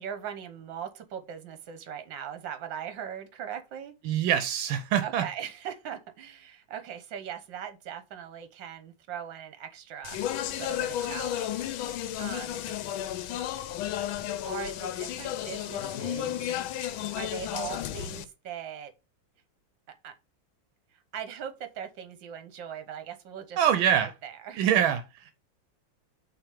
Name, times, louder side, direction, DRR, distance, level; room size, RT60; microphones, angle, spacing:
voice 1, 0.0-3.9 5.0-12.7 14.4-16.6 17.1-18.9 20.0-20.1 20.9-23.6 23.9-24.7, right 8 dB, 70° right, 1.7 m, -40 dB
voice 2, 4.0-5.2 23.6-24.1 24.6-25.3, right 9 dB, 85° right, 1.5 m, -24 dB
Speech, 10.0-18.2, left 11 dB, 85° left, 1.4 m, -33 dB
5.9 x 3.5 x 5.1 m
omnidirectional pair, 2.2 m